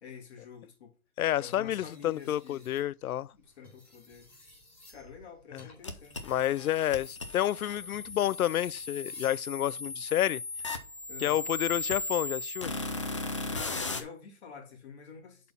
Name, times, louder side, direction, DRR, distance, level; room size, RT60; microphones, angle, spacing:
voice 1, 0.0-0.9 1.4-2.7 3.3-4.3 4.9-6.2 11.1-11.4 13.5-15.5, left 6 dB, 50° left, 2.9 m, -47 dB
voice 2, 1.2-3.3 5.5-5.7 6.2-10.4 11.2-12.7, left 12 dB, 80° left, 0.5 m, -29 dB
sound 1, 1.7-2.9 3.5-9.4 10.9-11.2, left 1 dB, ahead, 4.0 m, -56 dB
sound 2, 5.8-14.0, left 3 dB, 25° left, 0.4 m, -37 dB
7.3 x 4.3 x 5.7 m
hypercardioid pair, 150°, 43 cm